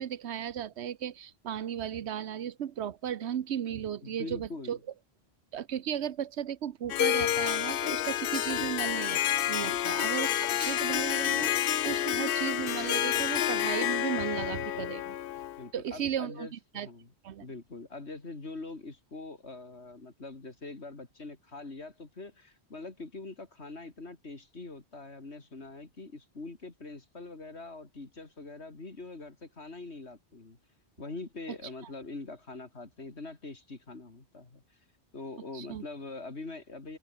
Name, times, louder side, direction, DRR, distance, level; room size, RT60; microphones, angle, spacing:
voice 1, 0.0-4.8 5.5-9.2 9.5-15.1 15.7-16.9 17.2-17.5 35.5-35.8, right 9 dB, 85° right, 1.1 m, -35 dB
voice 2, 4.0-4.8 9.6-10.0 14.7-14.9 15.6-17.1 17.4-30.6 31.0-34.8 35.1-37.0, left 3 dB, 85° left, 3.4 m, -43 dB
Harp, 6.9-15.6, left 12 dB, 65° left, 0.7 m, -29 dB
omnidirectional pair, 1.1 m